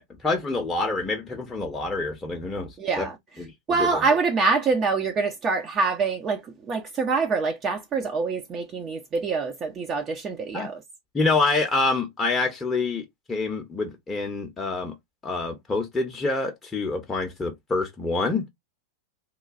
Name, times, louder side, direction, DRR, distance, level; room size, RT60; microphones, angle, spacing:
voice 1, 0.0-3.1 3.4-3.5 3.8-4.0 10.5-10.7 11.1-14.9 15.2-18.4, left 3 dB, 15° left, 0.6 m, -27 dB
voice 2, 2.8-3.1 3.7-6.4 6.7-10.8, right 4 dB, 25° right, 0.5 m, -25 dB
2.9 x 2.2 x 2.4 m
figure-of-eight pair, 90°, 0 cm